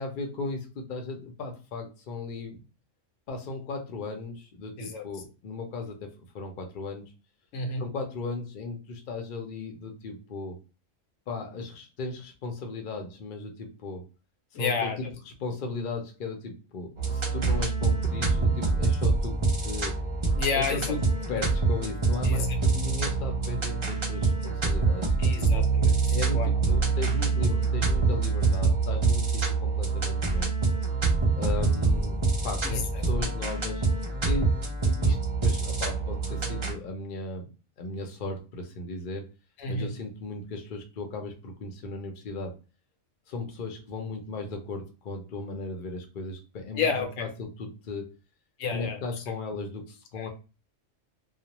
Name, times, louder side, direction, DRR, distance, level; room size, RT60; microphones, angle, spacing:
voice 1, 0.0-2.6 3.3-6.1 6.3-7.0 7.8-10.6 11.3-14.1 14.5-20.0 20.5-21.0 21.3-25.1 26.1-30.5 31.4-32.2 32.4-33.9 34.2-37.5 37.8-39.3 39.7-42.6 43.3-48.1 48.7-50.3, left 3 dB, 50° left, 3 dB, 0.6 m, -36 dB
voice 2, 14.5-15.0 20.4-20.9 22.2-22.5 25.2-26.0 26.3-26.5 32.6-32.8 39.6-39.9 46.7-47.3 48.6-49.0 50.2-50.3, left 4 dB, 85° left, 4 dB, 1.0 m, -30 dB
sound 1, 17.0-36.7, right 4 dB, 45° right, 0.3 m, -25 dB
2.4 x 2.1 x 2.9 m, 0.31 s
omnidirectional pair, 1.3 m